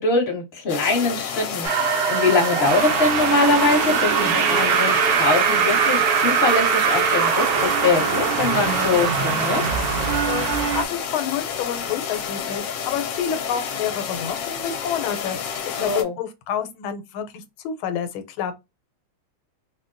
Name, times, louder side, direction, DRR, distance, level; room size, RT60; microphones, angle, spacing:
voice 1, 0.0-9.6 15.8-16.2, left 3 dB, 35° left, 1.2 m, -23 dB
sound 1, 0.7-16.0, left 7 dB, 70° left, 1.2 m, -30 dB
sound 2, 1.6-10.9, right 7 dB, 80° right, 0.8 m, -21 dB
voice 2, 10.7-18.5, left 9 dB, 90° left, 1.4 m, -29 dB
3.8 x 2.2 x 2.5 m
omnidirectional pair, 2.2 m